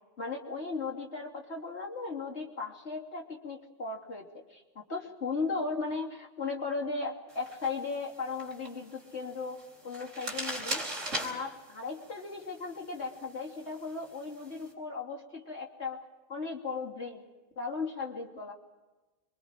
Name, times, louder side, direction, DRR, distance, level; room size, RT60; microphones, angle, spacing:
voice 1, 0.2-17.2 17.6-18.5, left 4 dB, 60° left, -1 dB, 3.3 m, -37 dB
sound 1, 7.3-14.7, right 1 dB, 85° right, 4.5 m, -41 dB
26.0 x 23.5 x 5.1 m, 1.2 s
omnidirectional pair, 1.2 m